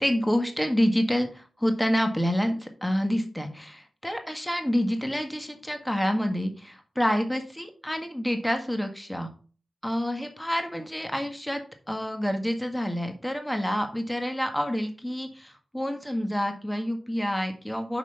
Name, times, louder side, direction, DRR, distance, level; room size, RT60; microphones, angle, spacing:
voice 1, 0.0-9.3 9.8-18.0, equal, 5° left, 5 dB, 1.7 m, -28 dB
6.2 x 6.0 x 5.8 m, 0.39 s
cardioid pair, 45°, 0 cm